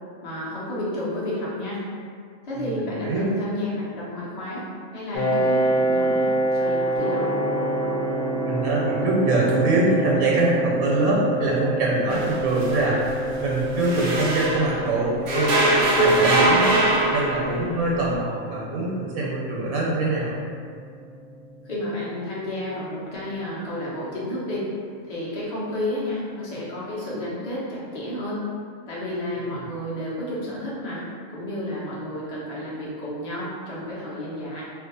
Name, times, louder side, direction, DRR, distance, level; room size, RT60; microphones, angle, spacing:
voice 1, 0.2-1.8 2.4-4.7 4.9-7.3 21.6-24.6 25.0-28.4 28.9-31.0 31.3-34.6, left 1 dB, 35° left, -7 dB, 0.7 m, -31 dB
Piano, 5.1-20.5, right 2 dB, 80° left, 1.1 m, -28 dB
Gong, 7.0-24.8, right 1 dB, 5° right, 0.5 m, -36 dB
voice 2, 8.4-13.0 13.4-20.4, right 2 dB, 85° right, -4 dB, 1.0 m, -24 dB
sound 1, 12.1-14.9 15.3-17.7, right 2 dB, 55° right, 0.6 m, -22 dB
2.7 x 2.3 x 3.8 m, 2.1 s
omnidirectional pair, 1.5 m